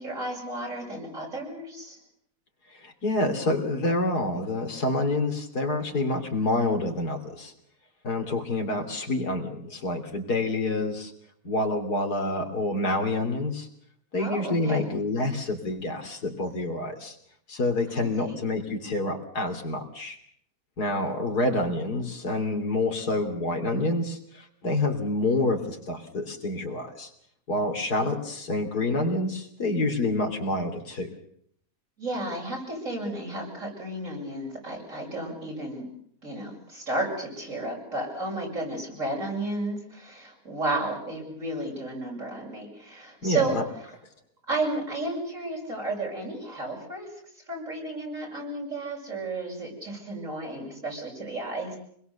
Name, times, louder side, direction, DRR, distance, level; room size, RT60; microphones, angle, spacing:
voice 1, 0.0-2.0 14.2-14.8 17.9-18.4 32.0-35.9 36.2-43.6 44.5-47.1 47.5-51.8, right 2 dB, 55° right, -1 dB, 7.7 m, -32 dB
voice 2, 2.7-7.5 8.0-11.1 11.4-13.7 14.1-17.2 17.5-20.2 20.8-27.1 27.5-31.1 43.2-43.6, left 2 dB, 85° left, 4 dB, 3.5 m, -27 dB
26.0 x 21.0 x 6.9 m, 0.67 s
omnidirectional pair, 1.6 m